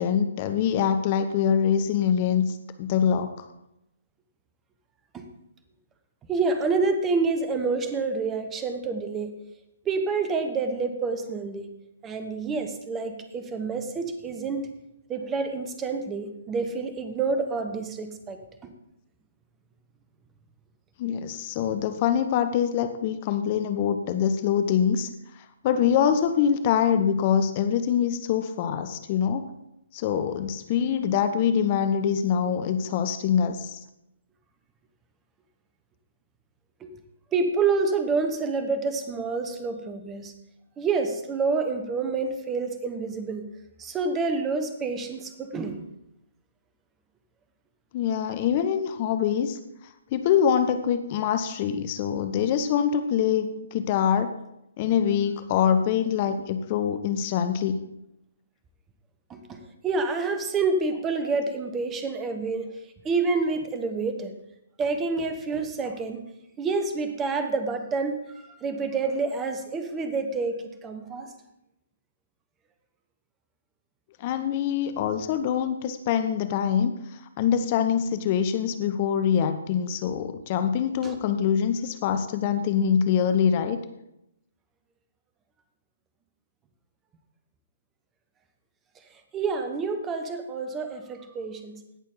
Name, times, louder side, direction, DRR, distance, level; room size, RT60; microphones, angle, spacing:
voice 1, 0.0-3.5 21.0-25.1 25.4-29.5 29.9-33.8 47.9-49.6 50.1-54.3 54.8-57.8 74.2-83.8, left 8 dB, 35° left, 9 dB, 0.7 m, -24 dB
voice 2, 6.3-9.3 9.8-11.7 12.0-14.7 15.1-18.7 36.8-36.9 37.3-40.3 40.8-43.5 43.8-45.8 59.3-62.8 63.0-64.3 64.8-66.2 66.6-68.2 68.6-71.3 81.0-81.1 89.3-91.8, right 4 dB, 15° right, 8 dB, 1.0 m, -28 dB
17.0 x 6.4 x 3.9 m, 0.84 s
figure-of-eight pair, 130°, 0 cm